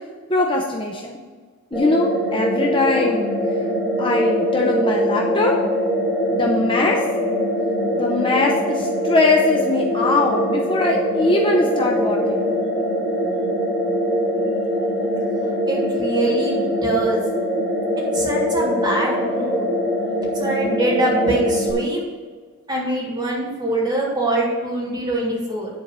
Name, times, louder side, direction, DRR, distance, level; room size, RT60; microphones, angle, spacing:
voice 1, 0.3-1.2 1.7-3.3 4.0-5.6 6.3-7.0 8.0-12.5, left 2 dB, 25° left, 0 dB, 0.7 m, -21 dB
sound 1, 1.7-21.7, equal, 5° right, 2.6 m, -22 dB
voice 2, 15.7-17.2 18.1-19.6 20.4-22.0 22.7-25.7, right 1 dB, 20° right, -5 dB, 2.8 m, -23 dB
10.0 x 4.5 x 6.7 m, 1.5 s
head